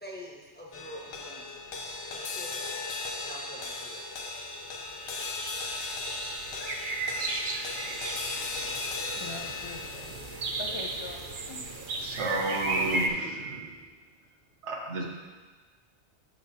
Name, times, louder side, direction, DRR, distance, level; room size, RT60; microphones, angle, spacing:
voice 1, 0.0-1.4 2.1-2.9 3.2-4.0, equal, 10° left, -4 dB, 0.9 m, -45 dB
sound 1, 0.7-13.2, left 3 dB, 80° left, 1.0 m, -38 dB
sound 2, 4.3-4.7 5.0-13.1, right 3 dB, 55° right, 0.7 m, -35 dB
voice 2, 9.1-11.7, left 2 dB, 45° left, -1 dB, 0.3 m, -43 dB
voice 3, 12.0-13.7 14.6-15.0, right 2 dB, 75° right, 0 dB, 1.2 m, -32 dB
8.4 x 6.3 x 2.7 m, 1.3 s
omnidirectional pair, 1.2 m